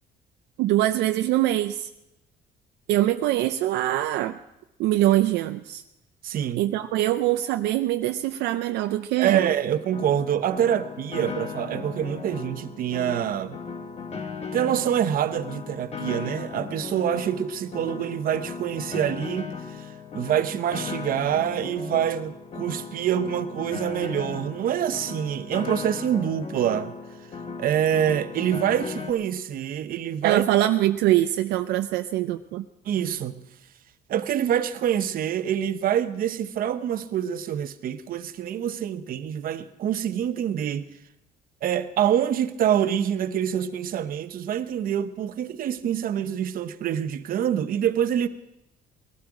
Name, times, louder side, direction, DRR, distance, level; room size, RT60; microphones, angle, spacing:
voice 1, 0.6-1.9 2.9-4.4 4.8-5.8 6.6-9.5 30.2-32.7, right 14 dB, 85° right, 0.5 m, -23 dB
voice 2, 6.2-6.6 9.2-13.6 14.5-19.9 20.1-26.9 27.6-30.4 32.8-33.4 34.1-40.9 41.6-48.3, right 9 dB, 60° right, 0.9 m, -26 dB
Piano, 9.9-29.1, left 5 dB, 35° left, 1.5 m, -37 dB
19.5 x 12.5 x 4.9 m
cardioid pair, 110°, 17 cm